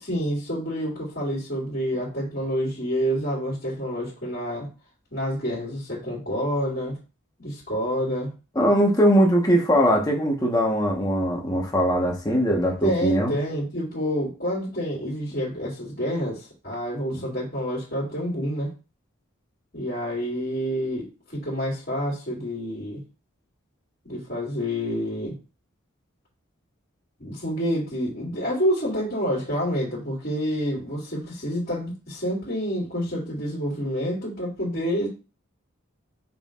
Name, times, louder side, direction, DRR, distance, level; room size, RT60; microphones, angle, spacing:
voice 1, 0.0-4.7 5.1-7.0 7.4-8.3 12.8-18.7 19.7-23.0 24.0-25.4 27.2-35.1, equal, 50° left, -6 dB, 2.7 m, -28 dB
voice 2, 8.5-13.4 17.1-17.2, equal, 20° left, -1 dB, 1.3 m, -21 dB
6.7 x 5.6 x 2.6 m, 0.32 s
head